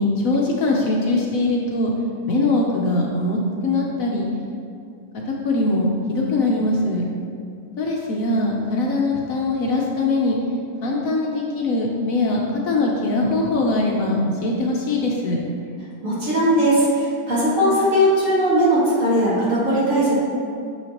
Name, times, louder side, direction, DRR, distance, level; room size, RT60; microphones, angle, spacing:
voice 1, 0.0-1.9 2.3-3.4 3.6-4.2 5.4-7.0 7.8-10.4 10.8-12.4 12.7-15.4, left 2 dB, 65° left, -1 dB, 1.0 m, -21 dB
voice 2, 16.0-20.2, equal, 50° right, -9 dB, 2.2 m, -19 dB
7.1 x 6.0 x 2.9 m, 2.4 s
omnidirectional pair, 1.7 m